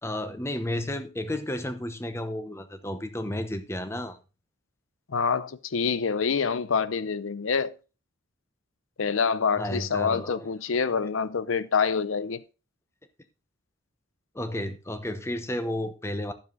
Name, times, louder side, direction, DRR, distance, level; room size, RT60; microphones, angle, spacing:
voice 1, 0.0-4.2 9.6-10.5 14.3-16.3, left 1 dB, 15° left, 0.9 m, -32 dB
voice 2, 5.1-7.7 9.0-12.4, left 5 dB, 90° left, 0.6 m, -26 dB
12.5 x 7.2 x 3.9 m
head